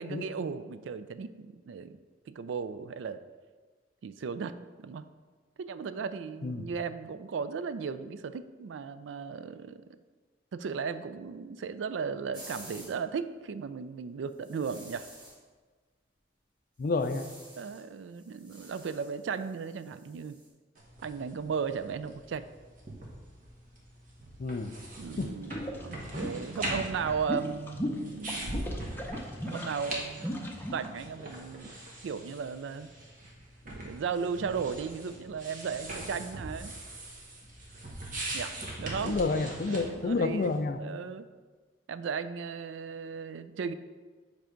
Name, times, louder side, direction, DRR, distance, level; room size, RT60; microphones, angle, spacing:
voice 1, 0.0-2.0 2.3-3.2 4.0-5.0 5.6-9.8 10.5-15.1 17.6-20.4 21.0-22.5 25.0-28.8 29.4-30.3 30.7-32.9 33.7-36.7 38.3-39.2 39.7-41.3 41.9-43.7, right 6 dB, 75° right, 13 dB, 0.3 m, -36 dB
sound 1, 12.3-13.0 14.4-15.4 16.8-17.9 18.1-20.5, right 1 dB, 25° right, 1.4 m, -51 dB
voice 2, 16.8-17.3 24.4-24.8 25.2-25.3 39.0-40.8, left 3 dB, 50° left, 9 dB, 0.4 m, -29 dB
sound 2, 20.8-40.6, right 1 dB, 45° right, 1.3 m, -42 dB
sound 3, 25.4-30.9, equal, 10° left, 0.6 m, -37 dB
7.6 x 3.4 x 5.1 m, 1.4 s
head